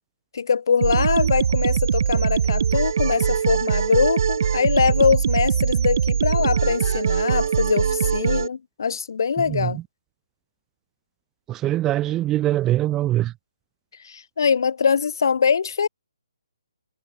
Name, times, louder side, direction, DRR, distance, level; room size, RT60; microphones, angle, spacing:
voice 1, 0.3-9.8 14.0-15.9, left 6 dB, 55° left, 2.0 m, -22 dB
sound 1, 0.8-8.5, right 7 dB, 45° right, 0.6 m, -22 dB
voice 2, 9.4-9.8 11.5-13.3, right 14 dB, 15° right, 0.8 m, -23 dB
figure-of-eight pair, 140°, 2 cm